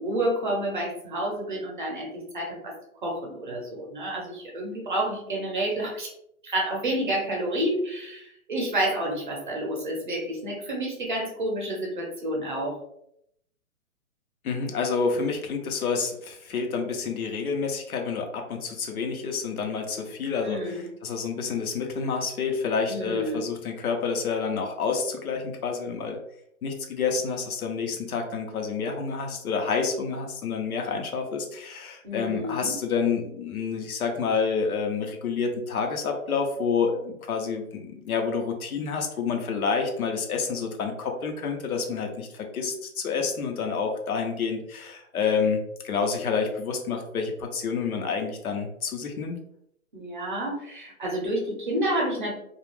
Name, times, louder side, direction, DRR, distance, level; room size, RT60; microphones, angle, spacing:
voice 1, 0.0-2.7 3.0-6.1 6.4-12.8 20.4-20.8 22.9-23.4 32.0-32.7 49.9-52.3, right 1 dB, 35° right, -1 dB, 0.6 m, -29 dB
voice 2, 14.4-26.2 26.6-49.4, left 5 dB, 85° left, 3 dB, 0.8 m, -28 dB
2.3 x 2.1 x 3.1 m, 0.74 s
hypercardioid pair, 170°, 42 cm